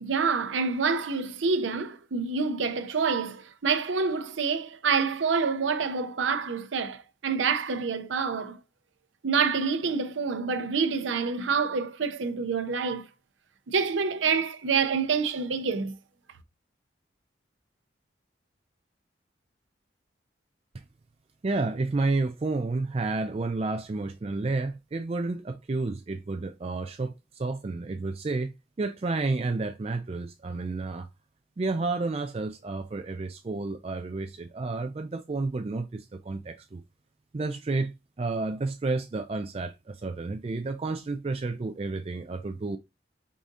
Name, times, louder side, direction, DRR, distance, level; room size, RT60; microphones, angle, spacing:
voice 1, 0.0-8.6 9.2-13.1 13.7-16.0, right 5 dB, 85° right, 0.6 m, -27 dB
voice 2, 21.4-31.1 31.6-36.8 37.3-42.8, right 3 dB, 30° right, 0.3 m, -31 dB
4.9 x 2.7 x 3.6 m
head